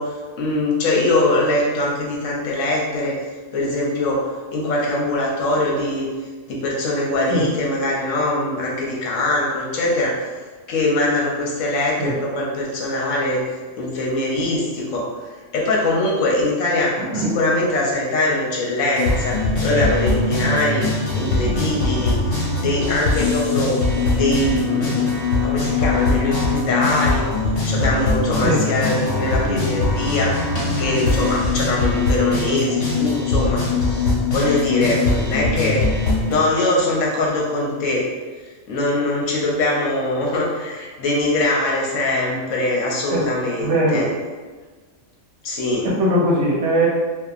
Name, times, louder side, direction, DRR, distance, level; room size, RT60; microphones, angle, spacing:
voice 1, 0.0-3.2 3.5-6.1 6.5-10.3 10.7-13.4 13.8-15.1 15.5-20.8 21.1-22.2 22.6-23.8 24.1-25.2 25.4-27.3 27.6-30.4 30.8-35.8 36.3-38.1 38.7-44.1 45.4-45.9, left 2 dB, 75° left, -2 dB, 1.0 m, -22 dB
voice 2, 17.0-17.3 28.4-28.6 43.1-43.3 43.6-44.0 45.8-46.9, right 1 dB, 70° right, -4 dB, 0.9 m, -20 dB
sound 1, 18.9-36.3, left 3 dB, 60° left, 1.1 m, -21 dB
2.8 x 2.3 x 2.4 m, 1.4 s
omnidirectional pair, 1.3 m